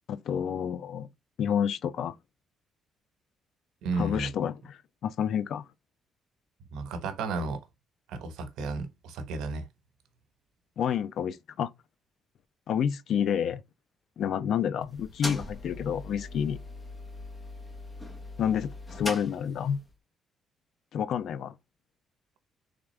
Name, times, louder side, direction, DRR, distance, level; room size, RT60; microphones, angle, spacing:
voice 1, 0.1-1.1 1.4-2.2 3.9-5.7 10.8-11.7 12.7-13.6 14.2-16.6 18.4-19.8 20.9-21.5, left 8 dB, 65° left, 0.4 m, -29 dB
voice 2, 3.8-4.3 6.7-7.6 8.1-9.7, right 3 dB, 90° right, 1.0 m, -33 dB
sound 1, 14.8-19.9, left 2 dB, 20° left, 1.0 m, -40 dB
3.6 x 3.4 x 3.2 m
cardioid pair, 120°, 0 cm